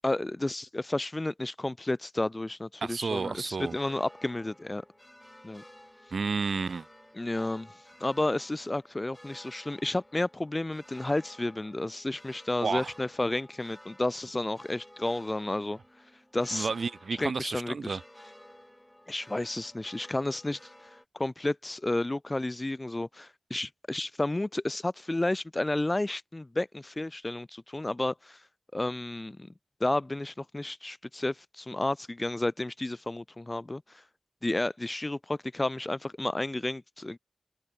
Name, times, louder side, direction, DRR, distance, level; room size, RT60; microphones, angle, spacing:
voice 1, 0.0-4.8 5.4-5.6 7.2-7.7 8.0-15.8 16.3-16.7 17.2-18.0 19.1-20.6 21.1-28.4 28.7-29.5 29.8-33.8 34.4-37.2, left 2 dB, 25° left, 0.4 m, -31 dB
voice 2, 2.8-3.7 6.1-6.9 12.6-12.9 16.5-18.0, right 4 dB, 80° right, 1.2 m, -31 dB
sound 1, 3.5-21.0, left 1 dB, 10° left, 5.2 m, -54 dB
wide cardioid pair, 95°, 0 cm